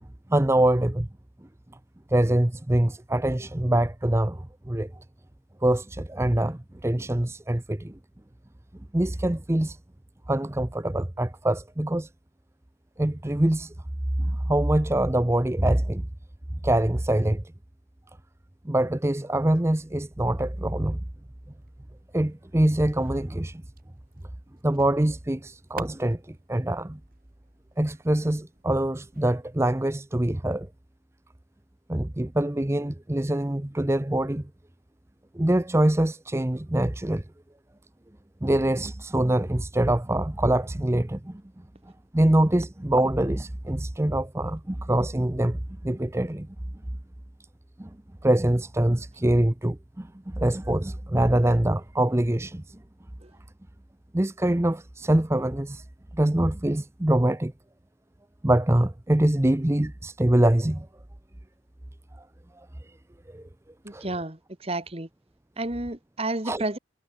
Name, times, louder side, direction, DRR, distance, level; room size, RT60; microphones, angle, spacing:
voice 1, 0.3-1.1 2.1-4.9 5.6-8.0 8.9-9.8 10.3-12.1 13.0-13.7 14.2-16.1 16.6-17.4 18.6-21.0 22.1-23.6 24.6-27.0 27.8-30.7 31.9-34.5 35.3-37.2 38.4-41.4 42.1-46.5 47.8-47.9 48.2-52.8 54.1-55.8 56.1-57.5 58.4-60.9 62.8-63.0 63.3-63.5 63.9-64.0 66.4-66.6, right 1 dB, 15° right, 0.6 m, -24 dB
sound 1, 20.3-29.7, right 4 dB, 45° right, 4.5 m, -53 dB
voice 2, 63.8-65.1 65.6-66.8, right 2 dB, 30° right, 1.9 m, -31 dB
head